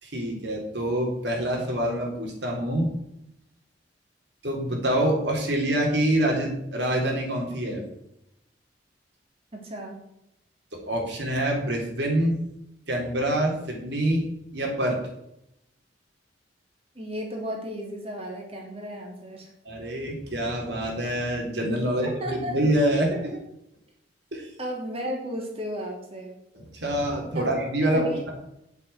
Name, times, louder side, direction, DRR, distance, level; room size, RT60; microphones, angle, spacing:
voice 1, 0.0-2.9 4.4-7.8 10.9-12.4 12.9-14.2 14.5-15.0 19.7-23.4 24.3-24.5 26.5-28.3, right 1 dB, 65° right, -1 dB, 3.9 m, -26 dB
voice 2, 9.5-10.0 16.9-19.5 22.0-22.5 24.6-26.4 27.3-27.5 27.8-28.2, equal, 30° right, 1 dB, 3.4 m, -34 dB
9.4 x 7.9 x 8.5 m, 0.80 s
head